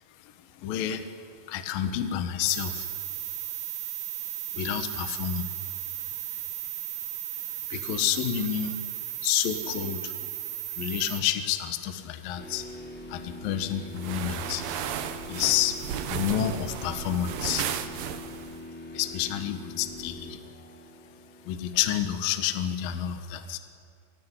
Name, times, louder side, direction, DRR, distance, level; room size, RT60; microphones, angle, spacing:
voice 1, 0.6-1.1 1.5-2.9 4.5-5.5 7.5-8.8 9.2-10.4 10.8-12.7 13.1-14.6 15.3-15.8 16.1-17.7 18.0-18.1 18.9-20.4 21.4-23.6, left 10 dB, 65° left, 8 dB, 2.3 m, -29 dB
sound 1, 2.5-11.2, right 13 dB, 60° right, 2.7 m, -35 dB
sound 2, 12.4-22.3, left 1 dB, 5° left, 1.5 m, -43 dB
sound 3, 13.9-18.6, right 9 dB, 80° right, 2.0 m, -34 dB
27.0 x 15.5 x 9.8 m, 2.3 s
omnidirectional pair, 5.7 m